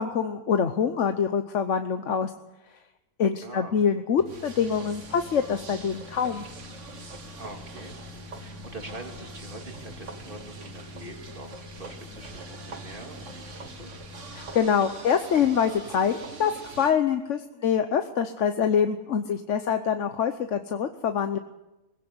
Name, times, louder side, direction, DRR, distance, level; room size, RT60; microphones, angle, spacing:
voice 1, 0.0-2.3 3.2-6.5 14.3-16.5 16.8-21.4, left 7 dB, 60° left, 8 dB, 1.2 m, -25 dB
voice 2, 3.4-3.8 7.4-13.9, right 2 dB, 40° right, 3 dB, 2.9 m, -44 dB
Microwave oven, 4.2-14.5, left 5 dB, 15° left, 2.7 m, -47 dB
sound 1, 4.3-16.9, right 4 dB, 60° right, 2.0 m, -43 dB
20.5 x 16.5 x 8.0 m, 0.99 s
omnidirectional pair, 1.5 m